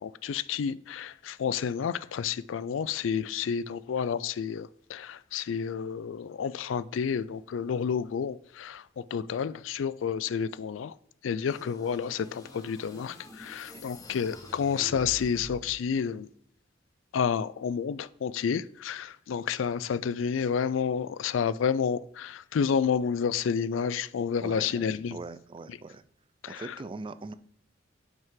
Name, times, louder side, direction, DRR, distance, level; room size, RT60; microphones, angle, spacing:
voice 1, 0.0-10.9 11.2-16.3 17.1-25.2 26.4-26.7, left 7 dB, 80° left, 0.4 m, -30 dB
sound 1, 11.5-15.8, equal, 20° left, 1.2 m, -47 dB
voice 2, 24.4-24.8 25.1-26.0 26.5-27.3, right 3 dB, 25° right, 0.4 m, -41 dB
9.0 x 5.4 x 3.7 m
head